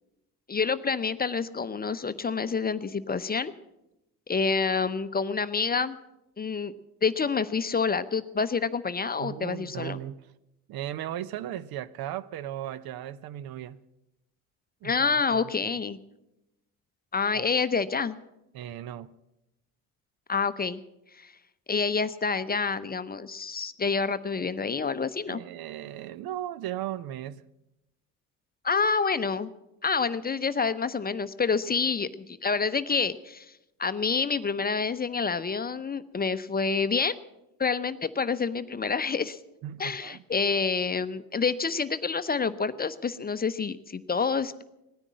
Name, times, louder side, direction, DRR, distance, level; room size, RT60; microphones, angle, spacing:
voice 1, 0.5-3.5 4.3-6.0 6.4-6.7 7.0-10.0 14.8-16.0 17.1-18.2 20.3-20.8 21.2-21.3 21.7-25.4 28.6-29.5 29.8-33.5 33.8-37.2 37.6-39.4 39.8-44.6, left 5 dB, 20° left, 0.7 m, -28 dB
voice 2, 9.2-10.2 10.7-13.8 14.8-15.5 17.3-17.5 18.5-19.1 25.3-27.5 39.6-40.2, right 11 dB, 55° right, 0.7 m, -37 dB
17.5 x 9.8 x 7.6 m
hypercardioid pair, 60°, 44 cm